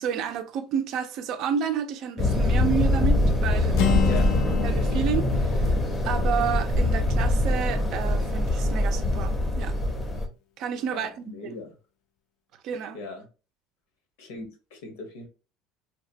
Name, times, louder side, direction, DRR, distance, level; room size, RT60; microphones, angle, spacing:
voice 1, 0.0-4.2 4.6-5.8 6.0-9.8 10.6-11.6 12.6-13.0, right 8 dB, 55° right, 0.4 m, -30 dB
sound 1, 2.2-10.3, left 1 dB, 15° left, 0.6 m, -23 dB
Acoustic guitar, 3.7-7.7, left 7 dB, 70° left, 0.4 m, -31 dB
voice 2, 10.9-11.7 12.9-13.3 14.2-15.3, left 3 dB, 90° left, 1.0 m, -38 dB
2.8 x 2.1 x 2.6 m
cardioid pair, 125°, 0 cm